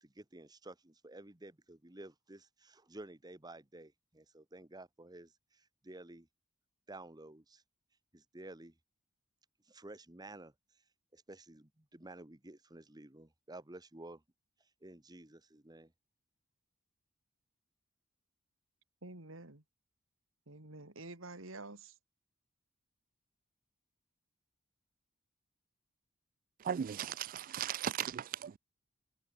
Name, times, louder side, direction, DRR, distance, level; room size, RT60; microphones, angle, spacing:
voice 1, 0.0-6.3 6.9-7.6 8.1-8.7 9.6-10.5 11.1-14.2 14.8-15.9, right 2 dB, 20° right, 1.4 m, -52 dB
voice 2, 19.0-19.6 20.5-22.0, right 2 dB, 80° right, 3.4 m, -49 dB
voice 3, 26.6-28.6, right 9 dB, 45° right, 0.3 m, -37 dB
head